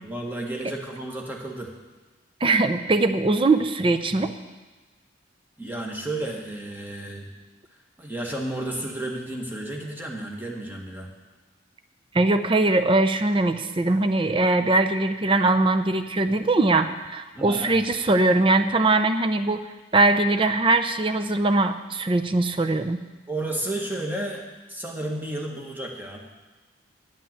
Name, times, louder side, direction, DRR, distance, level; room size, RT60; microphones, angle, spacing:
voice 1, 0.0-1.7 5.6-7.3 8.0-11.1 17.3-17.7 23.3-24.4 24.7-26.2, right 1 dB, 10° right, 0 dB, 1.4 m, -32 dB
voice 2, 2.4-4.3 12.1-19.6 19.9-23.0, right 2 dB, 25° right, 8 dB, 0.5 m, -21 dB
10.5 x 5.7 x 8.7 m, 1.2 s
head